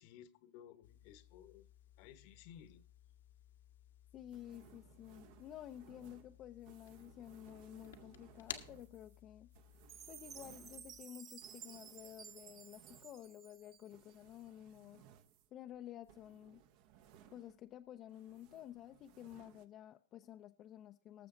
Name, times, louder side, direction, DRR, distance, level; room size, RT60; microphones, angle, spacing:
voice 1, 0.0-1.7 2.0-2.8, left 10 dB, 50° left, 1.1 m, -57 dB
sound 1, 0.8-11.0, left 9 dB, 85° left, 1.5 m, -56 dB
voice 2, 4.1-9.5 10.1-15.1 15.5-16.6 17.3-21.3, left 11 dB, 35° left, 0.6 m, -52 dB
sound 2, 4.3-17.8 18.1-19.7, right 9 dB, 50° right, 1.1 m, -64 dB
Chime, 9.9-14.1, right 8 dB, 30° right, 0.8 m, -55 dB
19.5 x 7.0 x 3.8 m
hypercardioid pair, 125°, 0 cm